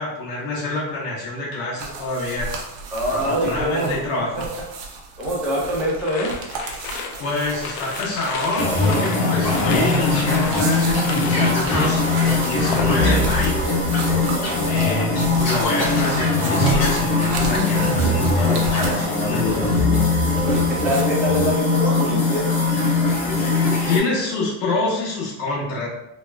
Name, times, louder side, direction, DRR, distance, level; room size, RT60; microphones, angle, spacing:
voice 1, 0.0-2.5 3.1-4.5 7.2-13.7 14.7-19.6 23.0-23.2 23.9-25.9, left 2 dB, 90° left, -6 dB, 1.5 m, -27 dB
sound 1, 1.8-21.0, right 4 dB, 55° right, 0.7 m, -33 dB
voice 2, 2.9-3.9 4.4-4.5 5.2-6.3 20.4-22.4, equal, 5° right, -7 dB, 0.7 m, -24 dB
sound 2, 6.0-13.4 13.7-14.2, left 5 dB, 75° left, 0.5 m, -34 dB
sound 3, 8.6-24.0, left 3 dB, 50° left, 0.9 m, -20 dB
3.5 x 2.2 x 2.2 m, 0.86 s
cardioid pair, 140°, 48 cm